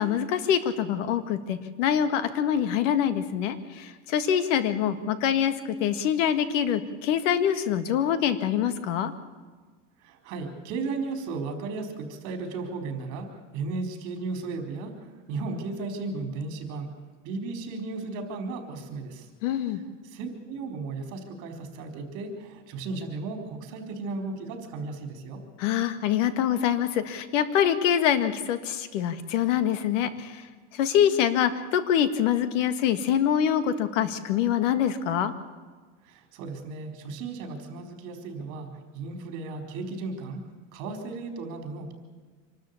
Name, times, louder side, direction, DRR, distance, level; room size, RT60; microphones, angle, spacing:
voice 1, 0.0-5.5 5.8-9.1 19.4-19.8 25.6-30.3 30.8-35.3, left 9 dB, 90° left, 11 dB, 1.9 m, -25 dB
voice 2, 10.0-13.3 13.5-16.9 17.2-19.3 19.6-25.4 36.0-38.7 38.9-40.4 40.7-41.9, right 3 dB, 50° right, 5 dB, 4.4 m, -35 dB
26.0 x 13.0 x 8.4 m, 1.5 s
cardioid pair, 165°, 36 cm